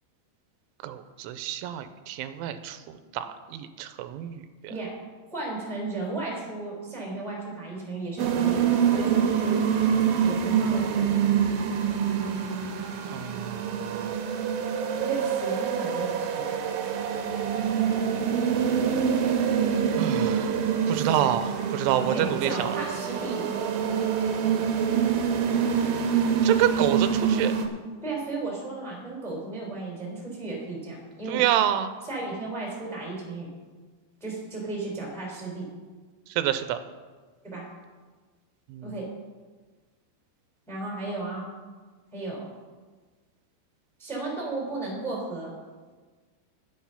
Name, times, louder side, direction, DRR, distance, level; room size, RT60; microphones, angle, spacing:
voice 1, 0.8-4.4 13.1-14.1 20.0-20.6 20.9-22.7 26.4-27.5 31.3-31.9 36.4-36.8 38.7-38.9, right 11 dB, 90° right, 10 dB, 3.1 m, -28 dB
voice 2, 5.3-9.6 10.0-11.2 14.9-16.9 20.9-21.2 22.0-23.4 28.0-31.4 32.0-33.5 34.2-35.6 37.4-37.7 38.8-39.1 40.7-41.5 42.1-42.4 44.0-45.5, right 3 dB, ahead, -2 dB, 2.2 m, -34 dB
sound 1, 8.2-27.7, right 7 dB, 70° right, 2.4 m, -25 dB
11.0 x 9.5 x 5.7 m, 1.4 s
omnidirectional pair, 5.5 m